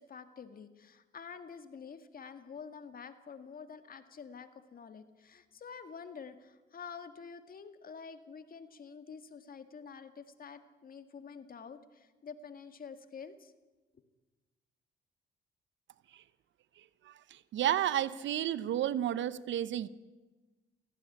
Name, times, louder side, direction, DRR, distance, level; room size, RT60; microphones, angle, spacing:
voice 1, 0.0-13.5, left 6 dB, 45° left, 9 dB, 2.0 m, -48 dB
voice 2, 17.1-19.9, right 11 dB, 70° right, 17 dB, 0.9 m, -32 dB
18.5 x 15.5 x 9.9 m, 1.2 s
cardioid pair, 90°, 20 cm